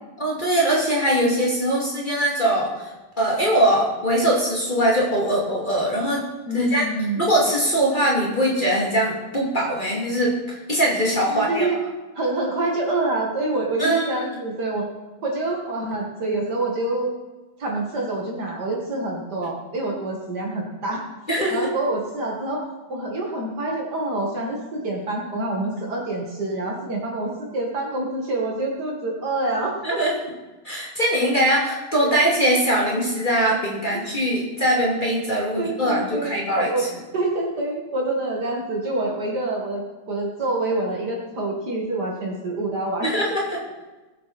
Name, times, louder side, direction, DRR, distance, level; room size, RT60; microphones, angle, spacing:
voice 1, 0.2-2.9 3.2-6.2 6.5-6.9 7.2-11.7 13.8-14.1 21.3-21.7 29.8-30.1 30.6-36.9 43.0-43.6, right 1 dB, 20° left, -4 dB, 2.7 m, -21 dB
voice 2, 6.5-7.2 11.3-11.8 12.1-14.9 15.2-17.1 17.6-21.0 21.5-22.6 22.9-30.0 32.0-32.2 33.9-34.0 35.6-36.8 37.1-43.1, right 2 dB, 50° right, -1 dB, 2.6 m, -26 dB
19.0 x 8.4 x 4.3 m, 1.1 s
omnidirectional pair, 2.3 m